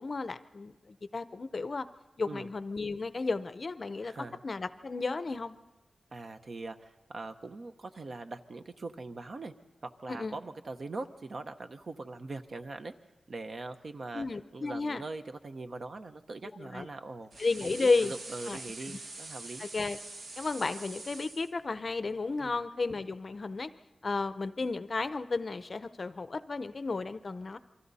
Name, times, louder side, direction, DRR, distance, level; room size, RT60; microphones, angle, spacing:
voice 1, 0.0-1.9 2.2-4.1 4.4-5.6 10.1-10.4 14.1-15.0 16.6-16.9 17.4-18.1 18.5-18.6 19.6-20.0 20.4-23.7 24.0-27.6, left 3 dB, 45° left, 13 dB, 0.6 m, -33 dB
voice 2, 4.0-4.4 6.1-9.5 9.8-12.9 13.3-14.3 14.5-17.3 17.6-19.7 22.4-22.6, right 3 dB, 55° right, 7 dB, 0.9 m, -42 dB
sound 1, 17.3-21.5, right 2 dB, 85° right, 1.9 m, -44 dB
28.0 x 24.0 x 4.1 m, 1.1 s
wide cardioid pair, 135°, 0 cm